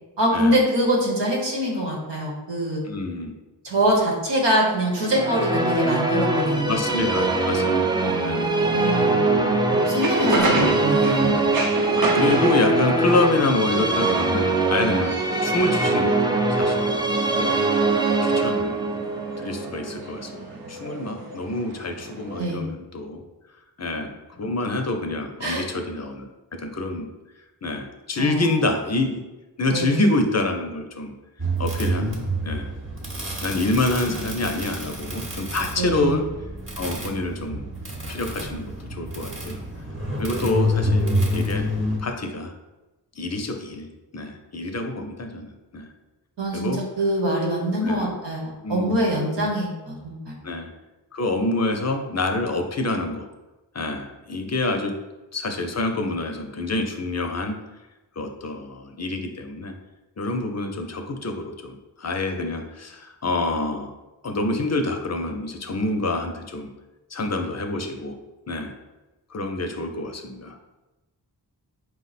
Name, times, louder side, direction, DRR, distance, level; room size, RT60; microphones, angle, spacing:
voice 1, 0.2-2.8 3.6-6.8 8.0-9.2 9.7-11.3 22.4-22.6 25.4-25.6 28.2-28.6 29.7-30.0 35.8-36.1 46.4-50.3, right 1 dB, 80° right, -2 dB, 1.2 m, -24 dB
voice 2, 2.8-3.3 6.7-8.5 9.3-9.7 10.3-10.8 11.2-11.5 12.1-15.1 15.4-17.0 17.4-17.6 18.2-18.8 19.4-23.2 23.8-27.1 27.6-29.2 29.6-31.1 31.6-32.7 33.4-36.2 36.8-37.7 38.1-39.6 40.2-41.1 41.3-41.7 42.0-42.5 43.2-43.9 44.1-45.9 46.5-46.8 47.8-48.2 48.6-49.1 50.4-50.7 51.1-53.3 53.7-54.9 55.3-57.6 58.2-59.7 60.2-63.9 64.2-66.7 67.1-68.2 68.5-68.7 69.3-70.6, left 2 dB, 40° left, 5 dB, 0.5 m, -27 dB
Musical instrument, 5.0-20.4, right 2 dB, 10° right, 0.4 m, -22 dB
sound 1, 9.7-22.5, right 2 dB, 55° right, 0.8 m, -31 dB
sound 2, 31.4-42.0, equal, 30° right, 0.9 m, -28 dB
4.7 x 2.1 x 4.0 m, 1.1 s
cardioid pair, 55°, 42 cm